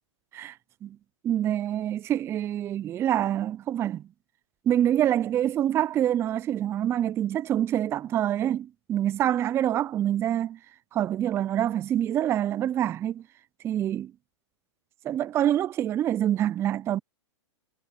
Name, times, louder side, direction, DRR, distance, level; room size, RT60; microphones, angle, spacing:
voice 1, 1.2-4.0 4.7-10.6 10.9-13.2 13.6-14.1 15.0-17.0, right 11 dB, 15° right, 0.3 m, -26 dB
hypercardioid pair, 125°, 16 cm